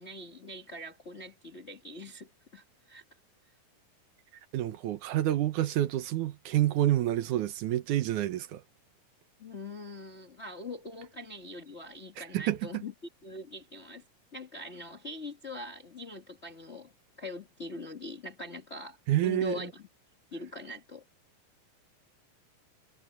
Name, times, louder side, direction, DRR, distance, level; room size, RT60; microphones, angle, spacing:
voice 1, 0.0-3.0 9.4-12.9 13.2-14.0 14.3-16.9 17.2-19.0 19.2-19.9 20.3-21.0, left 2 dB, 55° left, 0.7 m, -42 dB
voice 2, 4.5-8.6 12.2-12.8 19.1-19.7, right 13 dB, 70° right, 2.3 m, -28 dB
omnidirectional pair, 3.9 m